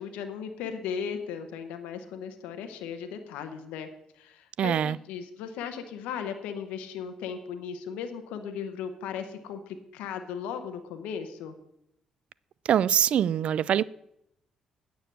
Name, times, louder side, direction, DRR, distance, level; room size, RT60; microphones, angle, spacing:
voice 1, 0.0-3.9 4.1-11.5, left 7 dB, 85° left, 7 dB, 0.9 m, -37 dB
voice 2, 4.6-5.0 12.7-13.8, right 9 dB, 60° right, 21 dB, 0.3 m, -23 dB
9.1 x 6.9 x 7.6 m, 0.79 s
supercardioid pair, 60°, 2 cm